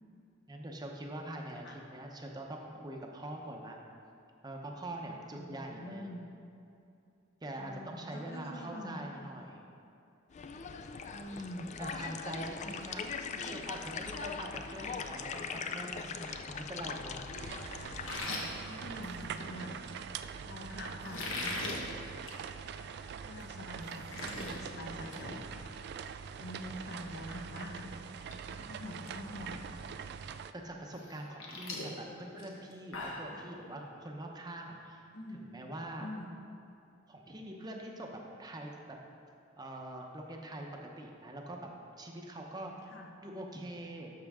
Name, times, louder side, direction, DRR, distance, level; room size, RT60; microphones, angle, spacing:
voice 1, 0.5-3.8 4.4-6.1 7.4-9.6 11.8-13.1 13.4-17.2 30.6-36.1 37.1-39.0 39.6-41.7 42.0-42.7 43.2-44.1, right 1 dB, 20° right, 1 dB, 0.7 m, -44 dB
voice 2, 5.3-6.2 7.6-9.0 9.4-9.6 11.0-11.8 18.7-19.9 20.4-21.8 23.2-25.4 26.4-28.0 28.4-29.6 33.3-33.5 35.1-35.5 36.0-36.3 42.9-43.1, left 1 dB, 55° left, 1 dB, 1.0 m, -45 dB
sound 1, 10.3-18.2, left 5 dB, 35° left, 0.4 m, -41 dB
sound 2, 17.3-30.5, right 7 dB, 55° right, 0.3 m, -44 dB
sound 3, 17.9-19.5 21.0-21.8 22.2-22.4 22.8-22.9 23.4-23.5 23.7-24.5 24.9-25.2 25.5-25.7 27.5-27.6 28.1-28.3 28.6-29.1 29.5-29.6 31.0-33.3, left 2 dB, 75° left, 1.2 m, -40 dB
12.5 x 5.9 x 3.6 m, 2.6 s
head